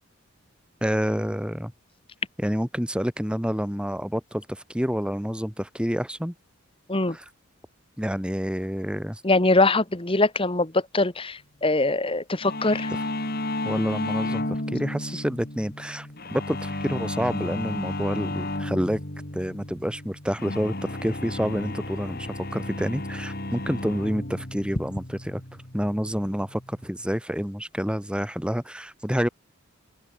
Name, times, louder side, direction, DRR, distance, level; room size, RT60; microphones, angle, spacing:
voice 1, 0.8-1.7 2.4-6.3 7.1-7.2 8.0-9.2 12.9-13.0 13.6-19.0 19.3-29.3, equal, 5° right, 3.0 m, -28 dB
voice 2, 9.2-12.9, left 2 dB, 25° left, 1.4 m, -22 dB
sound 1, 12.4-26.9, left 1 dB, 45° left, 3.0 m, -33 dB
head